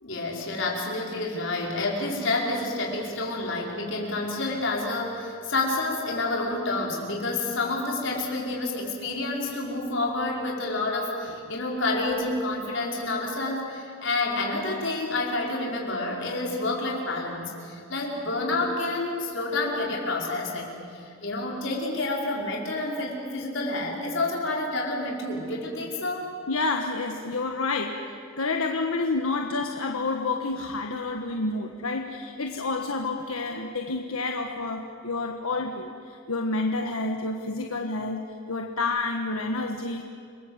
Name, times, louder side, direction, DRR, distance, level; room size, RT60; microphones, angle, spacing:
voice 1, 0.0-26.3, left 2 dB, 60° left, -2 dB, 5.3 m, -29 dB
voice 2, 26.5-40.0, left 3 dB, 80° left, 3 dB, 1.5 m, -29 dB
29.5 x 21.0 x 8.1 m, 2.5 s
head